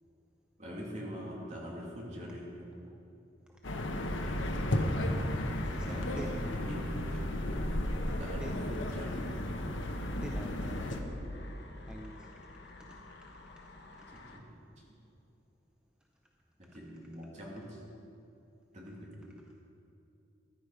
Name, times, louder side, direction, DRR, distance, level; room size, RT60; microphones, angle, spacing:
voice 1, 0.6-2.7 5.8-7.2 8.2-9.4 10.6-11.3 14.1-14.5 16.6-17.8 18.7-19.1, equal, 40° right, -4 dB, 2.8 m, -44 dB
sound 1, 3.6-11.0, left 1 dB, 85° left, 1.1 m, -34 dB
voice 2, 4.9-6.3 8.4-9.1 10.2-11.0 11.9-12.3 12.8-13.0 14.0-14.1, equal, 5° right, 1 dB, 0.6 m, -46 dB
sound 2, 8.1-14.4, left 1 dB, 60° left, 1.0 m, -48 dB
15.0 x 10.5 x 4.9 m, 2.8 s
head